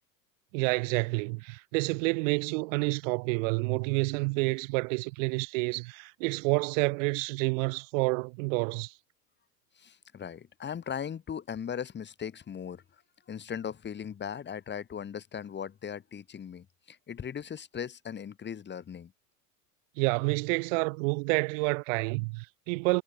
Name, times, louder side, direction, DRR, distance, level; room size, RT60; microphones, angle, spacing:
voice 1, 0.5-8.9 20.0-23.0, right 30 dB, 50° right, 1.0 m, -29 dB
voice 2, 9.8-12.8 13.3-19.1, left 8 dB, 20° left, 5.3 m, -38 dB
supercardioid pair, 130°, 49 cm